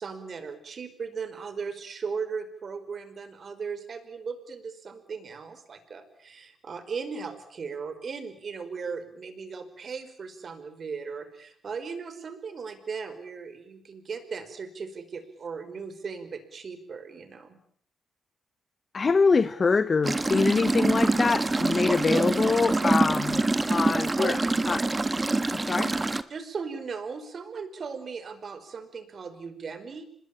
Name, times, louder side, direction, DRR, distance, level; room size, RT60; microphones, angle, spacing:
voice 1, 0.0-17.6 21.8-22.2 23.7-23.8 24.2-24.5 25.7-25.8 26.3-30.0, right 5 dB, 55° right, 11 dB, 5.2 m, -37 dB
voice 2, 18.9-23.4 23.7-24.4 24.7-24.8 25.7-25.9, left 4 dB, 40° left, 14 dB, 1.0 m, -24 dB
sound 1, 20.0-26.2, right 2 dB, 25° right, 1.7 m, -25 dB
26.5 x 21.0 x 8.8 m, 0.62 s
cardioid pair, 75°, 0 cm